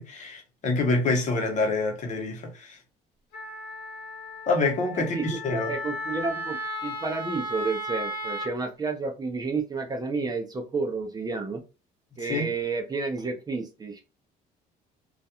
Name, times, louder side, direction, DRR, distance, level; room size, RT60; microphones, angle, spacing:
voice 1, 0.0-2.8 4.5-5.7 12.2-12.5, left 3 dB, 45° left, 0.8 m, -26 dB
Wind instrument woodwind instrument, 3.3-8.5, equal, 75° left, 1.1 m, -35 dB
voice 2, 4.9-11.6 12.2-14.0, right 4 dB, 20° right, 0.5 m, -31 dB
2.3 x 2.2 x 2.8 m
cardioid pair, 110°, 17 cm